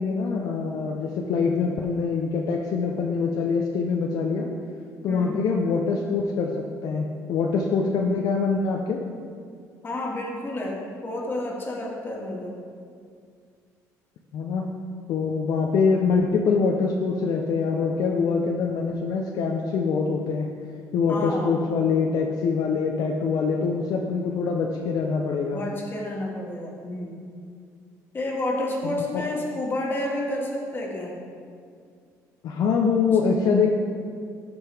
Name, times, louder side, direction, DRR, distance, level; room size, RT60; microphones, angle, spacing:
voice 1, 0.0-4.5 5.0-9.0 14.3-14.7 15.1-20.5 20.9-25.6 28.8-29.2 32.4-33.8, left 5 dB, 70° left, 1 dB, 0.7 m, -24 dB
voice 2, 9.8-12.6 21.1-21.6 25.5-27.2 28.1-31.1, left 1 dB, 30° left, -2 dB, 1.9 m, -30 dB
13.5 x 5.3 x 3.5 m, 2.2 s
cardioid pair, 105°, 7 cm